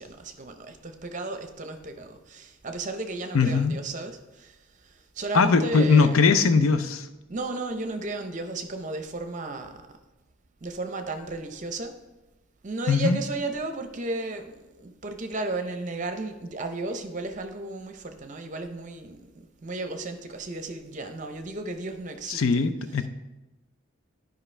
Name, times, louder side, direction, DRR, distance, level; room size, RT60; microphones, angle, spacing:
voice 1, 0.0-6.2 7.3-10.0 10.6-12.0 12.6-23.1, right 2 dB, 40° right, 6 dB, 0.7 m, -34 dB
voice 2, 3.3-3.7 5.3-7.1 12.9-13.2 22.3-23.1, left 4 dB, 90° left, 10 dB, 0.5 m, -20 dB
11.0 x 5.2 x 3.3 m, 1.1 s
head